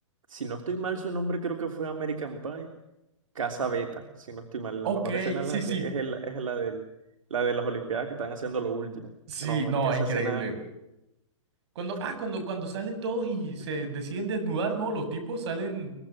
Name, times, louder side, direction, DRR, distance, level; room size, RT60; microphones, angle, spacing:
voice 1, 0.3-2.7 3.3-6.8 7.3-9.1 9.4-10.4, right 5 dB, 85° right, 5 dB, 3.2 m, -32 dB
voice 2, 4.8-5.9 9.3-10.5 11.8-16.0, right 3 dB, 55° right, 7 dB, 7.7 m, -30 dB
24.0 x 21.0 x 7.4 m, 0.89 s
hypercardioid pair, 145°, 17 cm